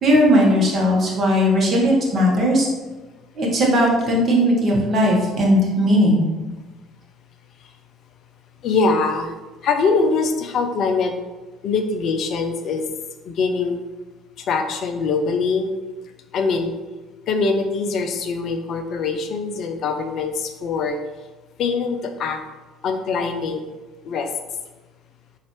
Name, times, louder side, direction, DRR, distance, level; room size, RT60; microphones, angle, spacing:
voice 1, 0.0-2.7 3.4-6.3, equal, 45° right, -2 dB, 1.0 m, -17 dB
voice 2, 8.6-9.3 9.6-11.1 11.6-12.9 13.2-13.8 14.5-15.7 16.3-16.7 17.3-21.0 21.6-22.4 22.8-23.6 24.0-24.3, left 4 dB, 50° left, 6 dB, 0.4 m, -23 dB
4.0 x 2.4 x 2.9 m, 1.2 s
figure-of-eight pair, 55°, 0 cm